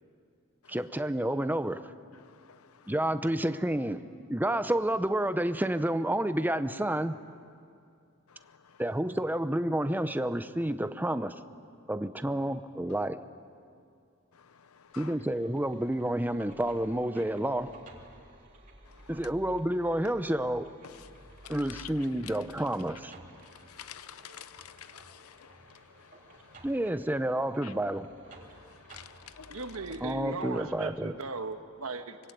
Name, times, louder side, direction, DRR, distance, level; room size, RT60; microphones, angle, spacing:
voice 1, 0.7-1.8 2.9-4.0 4.3-7.2 8.8-11.3 11.9-13.2 15.0-17.7 19.1-20.7 21.5-23.1 26.6-28.1 30.0-31.1, right 1 dB, 10° right, 0.7 m, -29 dB
voice 2, 2.2-2.9 8.3-8.8 14.3-15.2 18.9-19.1 20.8-22.3 23.4-26.7 27.6-27.7 28.4-29.6, left 9 dB, 85° left, 0.8 m, -50 dB
sound 1, 14.9-30.8, right 1 dB, 40° right, 3.3 m, -54 dB
voice 3, 29.5-32.2, right 3 dB, 75° right, 1.5 m, -37 dB
25.0 x 23.0 x 8.3 m
head